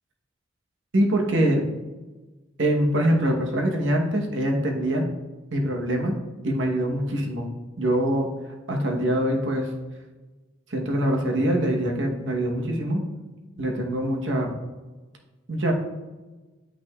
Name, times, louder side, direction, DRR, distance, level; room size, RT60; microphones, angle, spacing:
voice 1, 0.9-1.6 2.6-5.1 5.5-6.1 6.4-7.5 7.8-8.3 8.7-9.7 10.7-13.0 13.6-14.5 15.5-15.7, right 1 dB, 80° right, 2 dB, 1.0 m, -24 dB
8.5 x 5.7 x 2.3 m, 1.2 s
head